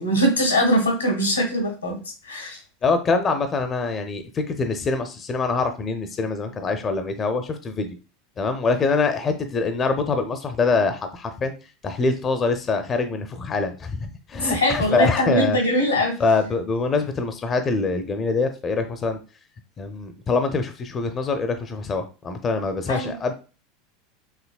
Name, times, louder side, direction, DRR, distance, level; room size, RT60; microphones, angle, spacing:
voice 1, 0.0-2.0 2.3-2.6 14.4-16.1 22.9-23.2, equal, 90° left, 2 dB, 1.2 m, -21 dB
voice 2, 2.8-7.9 8.4-11.5 11.8-15.6 16.2-19.2 19.8-23.3, left 4 dB, 30° left, 8 dB, 0.5 m, -24 dB
4.8 x 3.2 x 2.3 m, 0.33 s
figure-of-eight pair, 80°, 0 cm